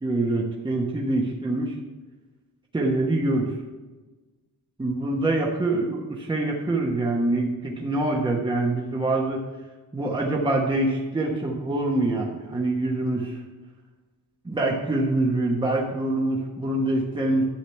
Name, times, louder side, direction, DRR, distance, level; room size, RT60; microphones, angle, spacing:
voice 1, 0.0-1.7 2.7-3.5 4.8-9.4 9.9-13.4 14.4-17.4, right 2 dB, 15° right, -2 dB, 1.2 m, -25 dB
11.5 x 8.6 x 3.4 m, 1.2 s
wide cardioid pair, 175°, 34 cm